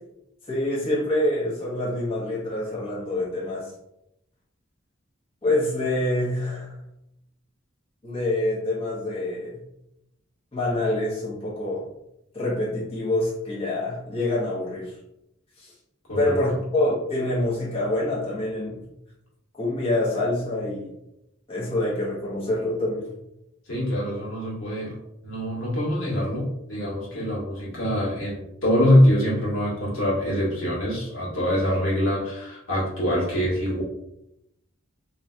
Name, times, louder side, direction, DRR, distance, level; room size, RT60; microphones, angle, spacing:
voice 1, 0.5-3.7 5.4-6.7 8.0-9.6 10.5-11.9 12.3-14.9 15.6-15.7 16.2-18.8 19.6-20.9 21.5-23.1, left 1 dB, 30° left, -7 dB, 1.0 m, -26 dB
voice 2, 23.7-25.0 25.2-33.8, equal, 80° left, -6 dB, 1.5 m, -24 dB
3.8 x 2.7 x 2.3 m, 0.84 s
head